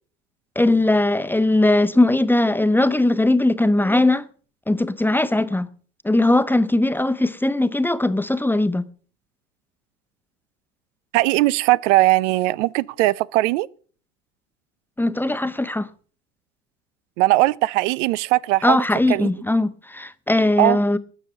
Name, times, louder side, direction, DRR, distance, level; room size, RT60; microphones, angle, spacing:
voice 1, 0.6-4.3 4.7-5.7 6.0-8.8 15.0-15.9 18.6-21.0, left 2 dB, 5° left, 1.0 m, -19 dB
voice 2, 11.1-13.7 17.2-19.3 20.6-20.8, right 18 dB, 70° right, 0.6 m, -19 dB
13.0 x 7.0 x 9.1 m
hypercardioid pair, 80°, 38 cm